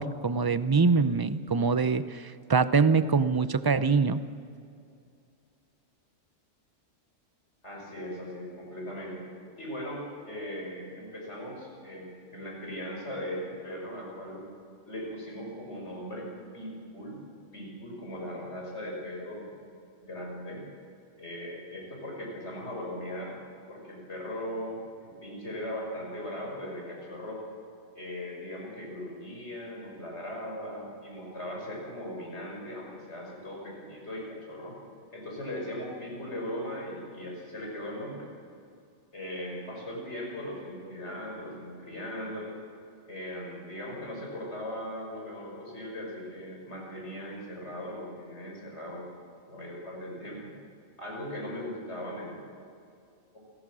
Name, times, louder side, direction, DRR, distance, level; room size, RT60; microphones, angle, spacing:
voice 1, 0.0-4.2, right 4 dB, 30° right, 14 dB, 0.4 m, -24 dB
voice 2, 7.6-9.3 9.6-14.5 14.9-17.3 17.5-19.5 20.0-20.6 21.2-23.4 23.7-27.4 27.9-34.7 35.1-38.3 39.1-42.5 43.1-49.1 49.5-50.5 51.0-52.4 53.3-53.4, left 1 dB, 70° left, -2 dB, 5.9 m, -39 dB
29.0 x 17.5 x 6.3 m, 2.4 s
omnidirectional pair, 1.2 m